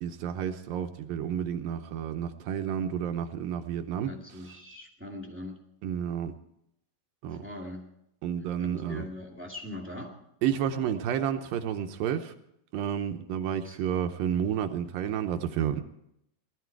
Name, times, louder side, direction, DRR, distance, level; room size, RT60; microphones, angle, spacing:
voice 1, 0.0-4.1 5.8-6.3 7.2-7.4 8.2-9.0 10.4-12.3 12.7-15.8, right 9 dB, 75° right, 7 dB, 2.4 m, -30 dB
voice 2, 4.1-5.6 7.3-7.9 8.6-10.2 13.6-13.8, left 1 dB, 5° right, 0 dB, 0.9 m, -41 dB
19.0 x 13.0 x 4.6 m, 0.79 s
omnidirectional pair, 4.3 m